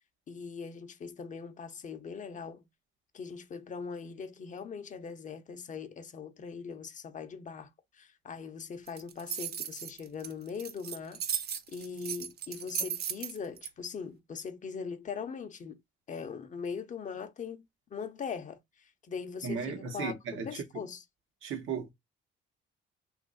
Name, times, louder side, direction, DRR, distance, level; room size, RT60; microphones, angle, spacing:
voice 1, 0.3-2.7 3.1-11.2 11.7-15.8 16.1-17.7 17.9-20.2 20.4-21.0, left 6 dB, 35° left, 0.6 m, -41 dB
sound 1, 8.9-13.7, right 8 dB, 50° right, 0.5 m, -36 dB
voice 2, 19.4-20.8 21.4-21.9, right 6 dB, 70° right, 1.0 m, -36 dB
3.0 x 2.5 x 3.7 m
cardioid pair, 125°, 21 cm